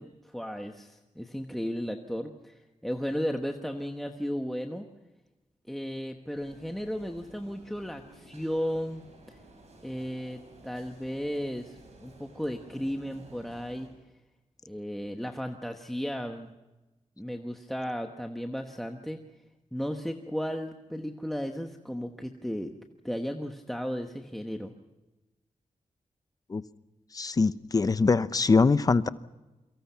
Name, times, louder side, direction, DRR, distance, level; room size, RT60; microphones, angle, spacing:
voice 1, 0.0-4.8 5.7-9.0 9.3-9.4 9.8-13.9 14.7-16.5 17.2-19.2 19.7-22.7 23.0-24.7, equal, ahead, 1.1 m, -35 dB
sound 1, 6.3-13.9, right 2 dB, 60° right, 7.3 m, -54 dB
voice 2, 27.1-29.1, left 4 dB, 30° left, 0.7 m, -23 dB
29.0 x 24.0 x 5.7 m
wide cardioid pair, 170°, 12 cm